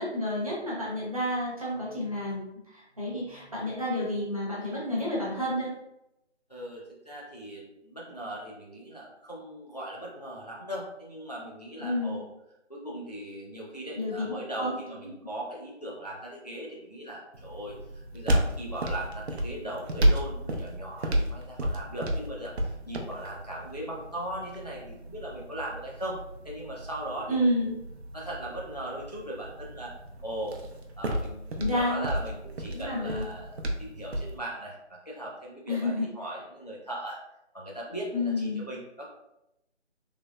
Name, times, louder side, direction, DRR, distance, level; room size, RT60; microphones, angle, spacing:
voice 1, 0.0-5.7 11.8-12.2 14.0-14.8 27.3-27.8 31.6-32.1 32.7-33.3 35.7-36.1 38.1-38.6, left 1 dB, 30° right, -5 dB, 0.8 m, -30 dB
voice 2, 6.5-12.3 12.7-26.2 26.4-27.5 28.1-29.9 30.2-30.6 31.0-37.2 37.5-39.0, right 1 dB, 35° left, -3 dB, 0.4 m, -39 dB
sound 1, 17.3-34.4, right 1 dB, 65° right, 0.6 m, -32 dB
3.3 x 2.8 x 2.3 m, 0.84 s
figure-of-eight pair, 170°, 35 cm